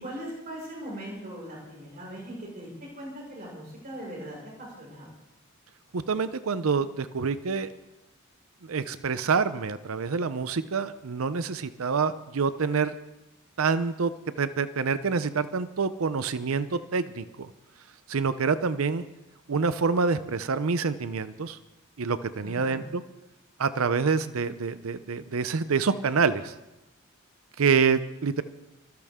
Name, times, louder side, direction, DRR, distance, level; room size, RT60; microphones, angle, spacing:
voice 1, 0.0-2.7 3.0-5.1 22.4-22.8, right 1 dB, 45° right, -5 dB, 5.8 m, -40 dB
voice 2, 5.9-7.7 8.6-13.0 13.6-14.1 14.4-17.5 18.1-19.0 19.5-21.6 22.0-23.0 23.6-26.5 27.6-28.4, right 5 dB, 90° right, 13 dB, 0.6 m, -27 dB
25.0 x 10.5 x 3.6 m, 0.96 s
head